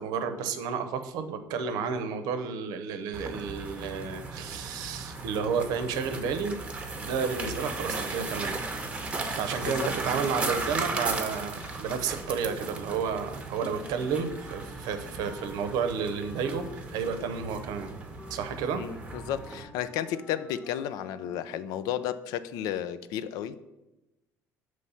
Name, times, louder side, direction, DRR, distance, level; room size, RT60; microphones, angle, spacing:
voice 1, 0.0-6.6 7.0-8.6 9.1-17.9 18.3-18.9, right 6 dB, 80° right, 9 dB, 0.7 m, -31 dB
sound 1, 3.1-19.6, right 3 dB, 20° right, 0.8 m, -36 dB
Wind instrument woodwind instrument, 13.7-21.8, left 2 dB, 15° left, 0.4 m, -52 dB
voice 2, 18.7-23.6, left 10 dB, 80° left, 14 dB, 0.4 m, -33 dB
6.9 x 3.2 x 5.5 m, 1.0 s
cardioid pair, 140°, 6 cm